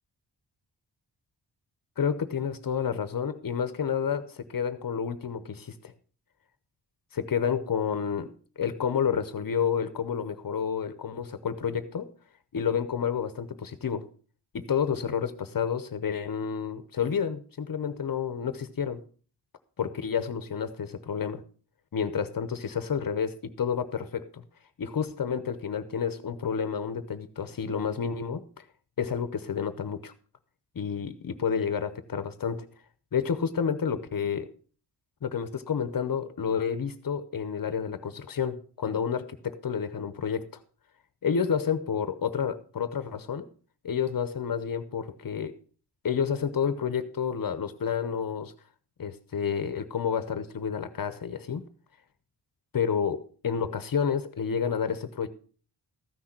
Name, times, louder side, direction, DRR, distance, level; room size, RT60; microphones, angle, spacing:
voice 1, 2.0-5.9 7.1-8.3 8.6-12.1 12.5-14.1 14.5-19.0 19.8-21.4 21.9-24.4 24.8-28.6 29.0-30.1 30.7-32.7 33.1-34.5 35.2-40.6 41.2-43.5 43.8-45.6 46.0-48.5 49.0-51.6 52.7-55.3, left 7 dB, 55° left, 12 dB, 0.8 m, -30 dB
14.0 x 6.4 x 5.8 m, 0.41 s
wide cardioid pair, 165°, 41 cm